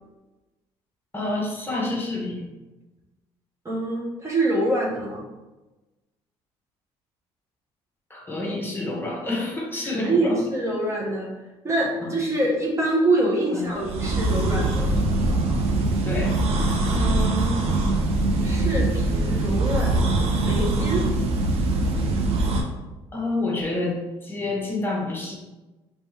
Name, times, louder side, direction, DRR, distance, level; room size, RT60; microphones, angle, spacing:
voice 1, 1.1-2.4 8.1-10.4 12.0-12.2 13.5-13.8 16.0-16.4 23.1-25.4, left 2 dB, 20° left, -3 dB, 1.0 m, -28 dB
voice 2, 3.6-5.2 9.8-11.3 11.6-15.1 16.9-17.7 18.4-21.1, right 1 dB, 25° right, -4 dB, 1.0 m, -25 dB
sound 1, 13.7-22.6, right 2 dB, 60° right, 0.6 m, -22 dB
3.4 x 3.0 x 2.8 m, 1.1 s
supercardioid pair, 80°, 12 cm